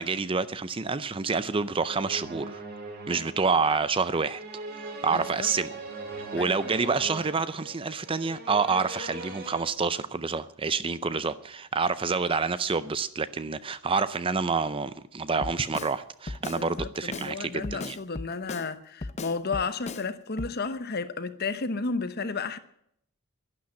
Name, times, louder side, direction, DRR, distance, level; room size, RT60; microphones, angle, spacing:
voice 1, 0.0-2.6 3.1-4.4 4.8-5.8 6.2-18.0, right 4 dB, 25° right, 0.5 m, -28 dB
sound 1, 1.7-9.6, right 3 dB, 45° right, 2.7 m, -40 dB
voice 2, 5.1-5.5 6.3-6.6 16.5-22.6, left 4 dB, 45° left, 0.9 m, -32 dB
Drum kit, 15.4-15.9 16.3-17.3 17.6-18.7 19.0-20.1 20.4-20.6, left 3 dB, 30° left, 0.6 m, -36 dB
11.5 x 11.5 x 8.5 m
head